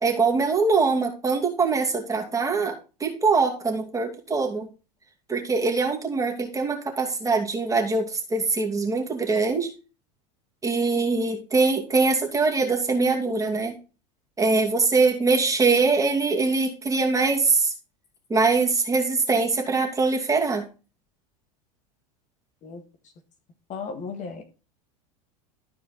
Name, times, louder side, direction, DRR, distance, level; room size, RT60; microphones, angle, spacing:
voice 1, 0.0-4.7 5.3-9.7 10.6-13.7 14.4-17.7 18.3-20.7, right 4 dB, 15° right, 1 dB, 2.4 m, -23 dB
voice 2, 23.7-24.4, left 5 dB, 40° left, 5 dB, 1.6 m, -35 dB
13.0 x 4.6 x 3.9 m, 0.33 s
hypercardioid pair, 85°, 20 cm